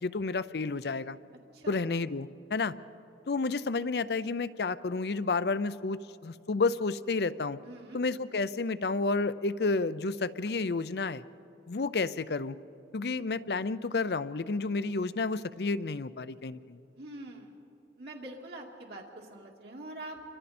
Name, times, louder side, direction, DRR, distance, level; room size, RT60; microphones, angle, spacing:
voice 1, 0.0-1.2 1.7-2.8 3.3-7.6 7.9-11.2 11.7-12.6 12.9-16.8, left 3 dB, 65° left, 15 dB, 0.6 m, -31 dB
voice 2, 7.6-8.0 17.0-17.6 18.0-20.2, right 1 dB, 70° right, -1 dB, 2.3 m, -44 dB
29.5 x 24.5 x 4.3 m, 2.9 s
head